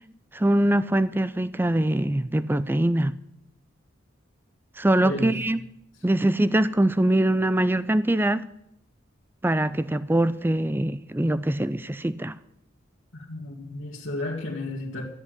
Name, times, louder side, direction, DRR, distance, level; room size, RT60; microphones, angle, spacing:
voice 1, 0.3-3.1 4.8-5.6 6.0-8.5 9.4-12.4, right 1 dB, 10° right, 0.4 m, -23 dB
voice 2, 5.0-5.4 13.1-15.0, left 1 dB, 85° left, 2.0 m, -32 dB
14.0 x 8.3 x 7.9 m
head